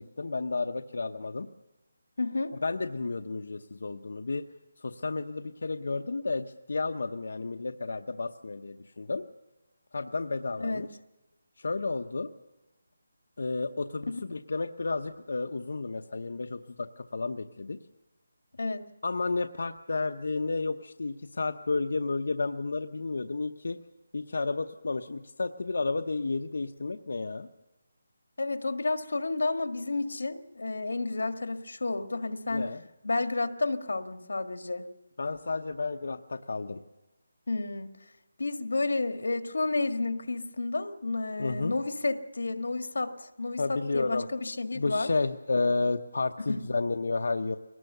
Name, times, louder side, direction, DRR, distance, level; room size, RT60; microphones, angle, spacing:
voice 1, 0.0-1.5 2.6-4.4 4.8-9.2 9.9-10.9 11.6-12.3 13.4-17.8 19.0-23.8 24.1-27.5 32.5-32.8 35.2-36.8 41.4-41.7 43.6-44.3 44.7-47.6, left 3 dB, 65° left, 6 dB, 0.9 m, -31 dB
voice 2, 2.2-2.5 10.6-10.9 18.6-18.9 28.4-32.7 33.0-34.8 37.5-37.9 38.4-45.1 46.4-46.6, left 3 dB, 80° left, 9 dB, 1.8 m, -31 dB
22.5 x 19.0 x 6.8 m, 1.1 s
hypercardioid pair, 175°, 0 cm